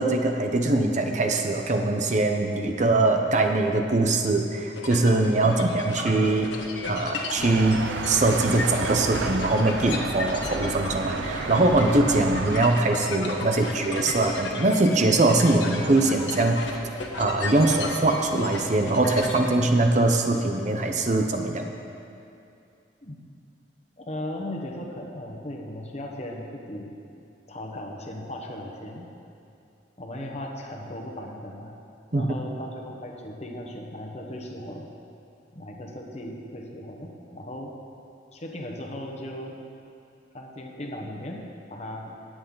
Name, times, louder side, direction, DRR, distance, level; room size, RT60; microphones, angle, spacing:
voice 1, 0.0-6.5 6.9-7.8 8.1-16.6 17.2-21.7 32.1-32.3, right 2 dB, 40° right, 4 dB, 0.7 m, -22 dB
sound 1, 4.7-19.4, left 3 dB, 80° left, 1.3 m, -35 dB
sound 2, 7.4-12.6, right 4 dB, 75° right, 0.6 m, -31 dB
voice 2, 24.0-27.0 27.5-29.1 30.0-31.7 32.1-34.9 35.5-37.7 38.3-39.6 40.3-41.4 41.7-42.2, left 1 dB, 35° left, 0 dB, 1.2 m, -37 dB
19.5 x 7.9 x 4.0 m, 2.6 s
head